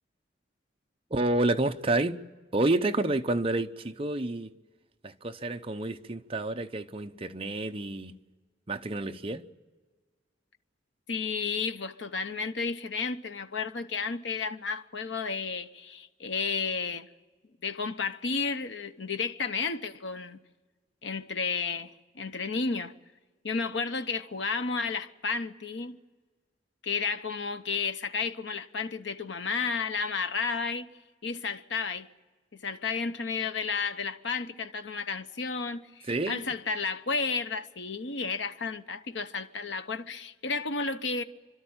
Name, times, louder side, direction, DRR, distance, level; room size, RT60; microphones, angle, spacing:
voice 1, 1.1-2.2 2.5-4.5 5.0-8.2 8.7-9.5 36.1-36.4, right 2 dB, 30° right, 0.8 m, -29 dB
voice 2, 11.1-17.1 17.6-20.4 21.0-22.9 23.4-25.9 26.8-30.9 31.2-32.1 32.6-41.2, left 5 dB, 70° left, 0.9 m, -32 dB
29.0 x 12.5 x 8.7 m
head